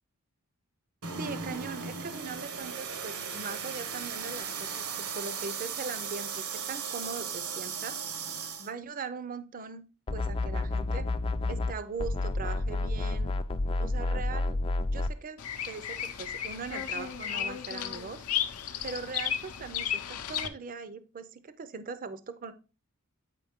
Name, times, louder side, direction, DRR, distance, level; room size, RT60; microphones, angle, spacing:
sound 1, 1.0-8.7, right 6 dB, 75° right, 1.0 m, -37 dB
voice 1, 1.2-8.0 8.6-9.8 10.1-11.1 11.5-13.3 13.8-14.6 14.9-18.2 18.8-22.5, right 4 dB, 40° right, 13 dB, 0.5 m, -40 dB
sound 2, 10.1-11.7 12.0-15.1, left 2 dB, 25° left, 0.4 m, -30 dB
Bird vocalization bird call bird song, 15.4-20.5, left 9 dB, 80° left, 0.6 m, -34 dB
8.3 x 4.9 x 3.5 m, 0.33 s
head